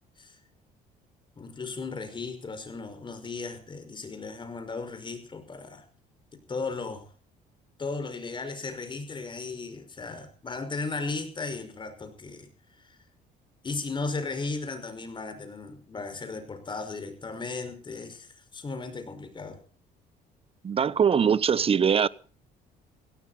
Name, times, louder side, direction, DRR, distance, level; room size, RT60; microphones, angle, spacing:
voice 1, 1.4-5.8 6.5-7.0 7.8-12.5 12.8-13.0 13.6-19.6, left 3 dB, 30° left, 5.3 m, -36 dB
voice 2, 20.6-22.1, right 7 dB, 35° right, 1.0 m, -22 dB
17.0 x 17.0 x 4.2 m
cardioid pair, 110°, 17 cm